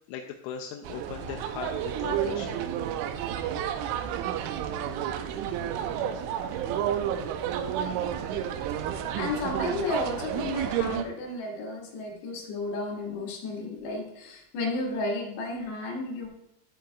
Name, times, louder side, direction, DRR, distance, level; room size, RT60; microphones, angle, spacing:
voice 1, 0.1-2.6, left 8 dB, 85° left, 2 dB, 2.9 m, -39 dB
sound 1, 0.9-11.1, right 9 dB, 85° right, 2.7 m, -31 dB
voice 2, 9.2-16.3, left 2 dB, 65° left, -2 dB, 3.6 m, -32 dB
11.5 x 7.6 x 2.3 m, 0.84 s
omnidirectional pair, 6.0 m